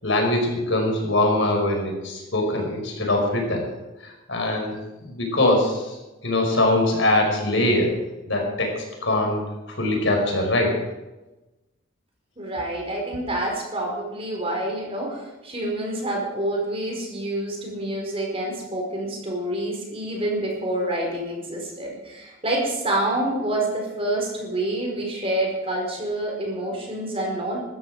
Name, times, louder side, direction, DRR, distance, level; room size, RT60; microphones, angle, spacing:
voice 1, 0.0-3.6 4.0-6.0 6.2-8.0 8.3-9.4 9.7-10.7, left 1 dB, 65° left, 1 dB, 5.2 m, -22 dB
voice 2, 12.4-27.6, right 1 dB, 30° right, 0 dB, 4.8 m, -27 dB
18.5 x 14.0 x 4.9 m, 1.1 s
head